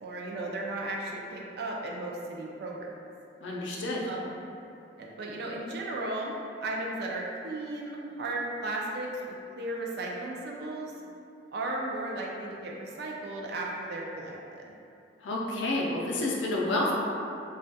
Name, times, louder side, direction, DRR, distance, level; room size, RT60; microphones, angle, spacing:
voice 1, 0.0-2.9 4.1-4.3 5.0-10.9 11.5-14.7, right 2 dB, 55° right, -1 dB, 0.3 m, -35 dB
voice 2, 3.4-4.1 15.2-16.9, left 2 dB, 75° left, -3 dB, 0.4 m, -29 dB
2.2 x 2.1 x 2.6 m, 2.6 s
head